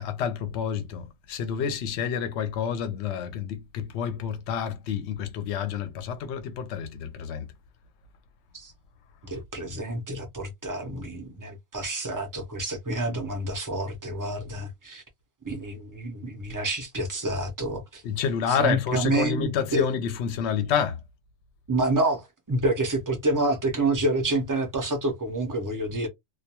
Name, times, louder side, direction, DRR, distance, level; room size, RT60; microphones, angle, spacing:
voice 1, 0.0-7.5 18.0-21.0, left 7 dB, 70° left, 0.9 m, -29 dB
voice 2, 9.2-15.0 15.4-18.0 18.5-19.9 21.7-26.1, right 2 dB, 25° right, 0.5 m, -28 dB
2.4 x 2.2 x 2.7 m
omnidirectional pair, 1.3 m